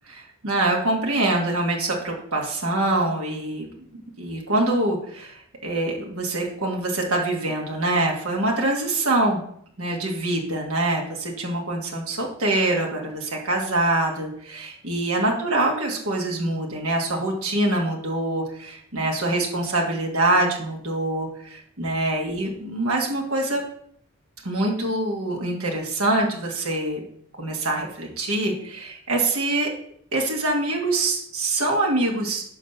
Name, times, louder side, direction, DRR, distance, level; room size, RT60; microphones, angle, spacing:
voice 1, 0.4-3.7 4.2-9.4 9.8-23.6 24.4-27.0 27.4-29.7 30.1-32.4, right 2 dB, 85° right, 0 dB, 1.7 m, -24 dB
9.9 x 3.3 x 6.6 m, 0.64 s
head